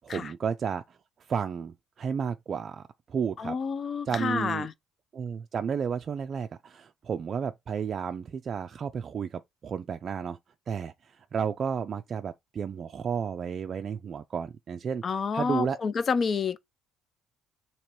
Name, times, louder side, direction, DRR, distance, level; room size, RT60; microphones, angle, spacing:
voice 1, 0.0-1.0 1.3-3.6 4.1-4.7 5.1-10.4 10.7-15.0 15.3-15.8, right 7 dB, 45° right, 0.3 m, -32 dB
voice 2, 3.4-4.7 15.0-16.6, left 5 dB, 45° left, 0.4 m, -29 dB
2.9 x 2.9 x 4.5 m
cardioid pair, 95°, 0 cm